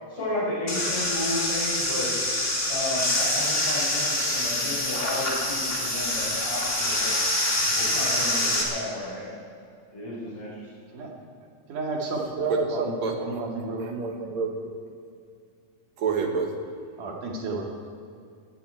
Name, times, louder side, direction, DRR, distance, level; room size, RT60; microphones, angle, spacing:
voice 1, 0.1-2.1 2.7-7.1 7.7-9.3 9.9-10.6, left 1 dB, 45° left, -11 dB, 6.1 m, -32 dB
sound 1, 0.7-8.6, left 1 dB, 25° left, 2.8 m, -26 dB
voice 2, 11.7-14.0 17.0-17.7, right 3 dB, 85° right, 0 dB, 3.8 m, -33 dB
voice 3, 12.4-14.5 16.0-16.5, right 4 dB, 65° right, 3 dB, 2.6 m, -28 dB
18.0 x 16.5 x 4.6 m, 2.4 s
omnidirectional pair, 3.6 m